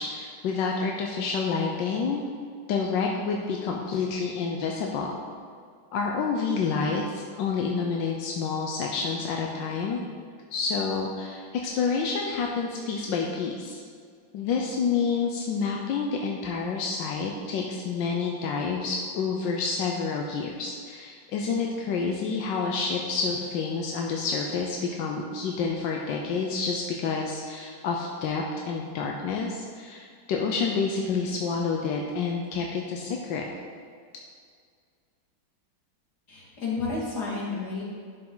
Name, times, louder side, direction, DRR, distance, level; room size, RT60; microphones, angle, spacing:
voice 1, 0.0-2.2 2.7-5.1 5.9-10.0 10.5-13.8 14.3-33.5, left 5 dB, 90° left, 0 dB, 1.5 m, -28 dB
voice 2, 36.3-37.8, left 4 dB, 65° left, -5 dB, 2.8 m, -31 dB
11.5 x 7.0 x 3.8 m, 2.1 s
omnidirectional pair, 1.9 m